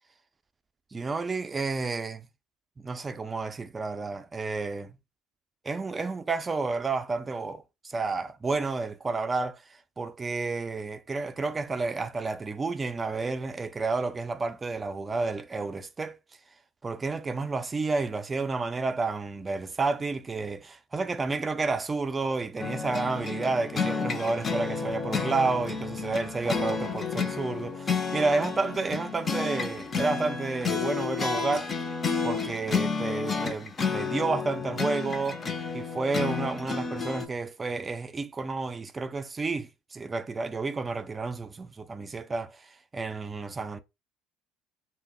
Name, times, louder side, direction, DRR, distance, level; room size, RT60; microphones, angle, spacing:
voice 1, 0.9-2.3 2.8-5.0 5.6-16.2 16.8-31.7 32.2-35.4 35.7-43.8, right 3 dB, 25° right, 0.4 m, -31 dB
sound 1, 22.6-37.3, left 5 dB, 35° left, 0.5 m, -31 dB
2.0 x 2.0 x 3.6 m
supercardioid pair, 80°, 0 cm